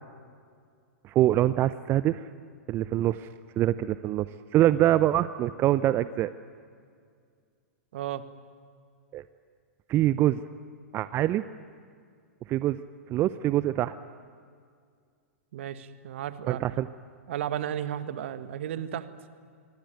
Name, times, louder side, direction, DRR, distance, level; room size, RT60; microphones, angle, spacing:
voice 1, 1.0-2.3 2.7-3.3 3.6-6.3 9.1-9.2 9.9-10.4 10.9-11.4 12.5-12.8 13.1-14.0 16.5-16.9, right 13 dB, 30° right, 15 dB, 0.7 m, -24 dB
voice 2, 7.9-8.2 15.5-16.6 17.3-19.1, right 10 dB, 60° right, 12 dB, 1.6 m, -33 dB
25.5 x 23.5 x 9.2 m, 2.2 s
figure-of-eight pair, 105°, 8 cm